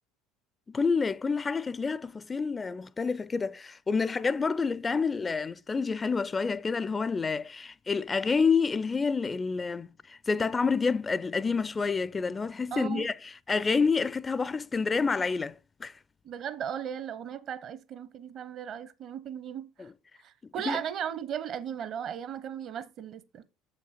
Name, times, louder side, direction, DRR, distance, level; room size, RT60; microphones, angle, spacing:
voice 1, 0.7-15.9 19.8-19.9 20.7-20.8, left 5 dB, 25° left, 0.4 m, -28 dB
voice 2, 12.7-13.1 16.2-19.9 20.2-23.4, right 9 dB, 45° right, 0.7 m, -36 dB
7.4 x 5.8 x 4.3 m
figure-of-eight pair, 65°, 0 cm